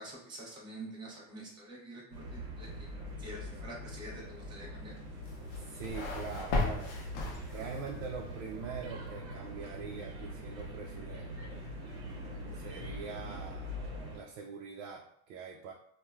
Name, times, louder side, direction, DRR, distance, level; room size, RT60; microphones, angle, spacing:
voice 1, 0.0-2.9 3.2-4.9, right 1 dB, 10° right, -4 dB, 0.5 m, -47 dB
sound 1, 2.1-14.2, equal, 55° right, 0.8 m, -43 dB
sound 2, 5.3-7.9, left 2 dB, 50° left, 0.6 m, -35 dB
voice 2, 5.5-6.9 7.4-11.6 12.5-13.8 14.1-15.7, right 5 dB, 85° right, 0 dB, 0.5 m, -43 dB
3.1 x 2.1 x 2.2 m, 0.71 s
cardioid pair, 165°, 39 cm